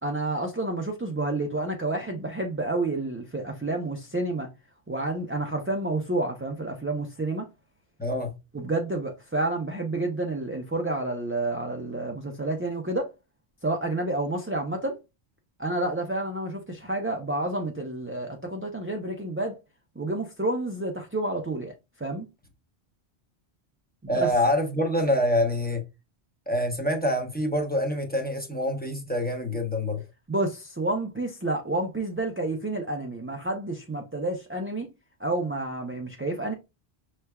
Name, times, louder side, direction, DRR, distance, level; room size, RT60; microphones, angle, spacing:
voice 1, 0.0-4.5 4.9-7.5 8.5-13.1 13.6-15.0 15.6-19.6 20.0-21.7 22.0-22.3 24.0-24.3 30.3-34.9 35.2-36.5, right 2 dB, 20° right, 0.3 m, -29 dB
voice 2, 8.0-8.3 24.1-25.8 26.5-30.0, left 1 dB, 10° left, 0.7 m, -26 dB
5.7 x 3.2 x 2.2 m
omnidirectional pair, 1.1 m